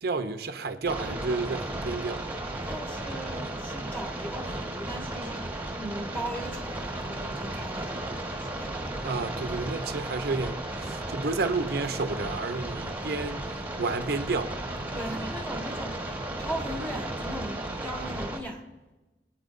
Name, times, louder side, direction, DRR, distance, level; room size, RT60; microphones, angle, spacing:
voice 1, 0.0-2.2 9.0-14.5, right 3 dB, 65° right, 0.7 m, -31 dB
sound 1, 0.9-18.4, right 1 dB, 10° right, 1.3 m, -34 dB
voice 2, 2.6-8.8 14.9-18.7, right 1 dB, 10° left, 1.7 m, -38 dB
23.5 x 9.1 x 2.6 m
head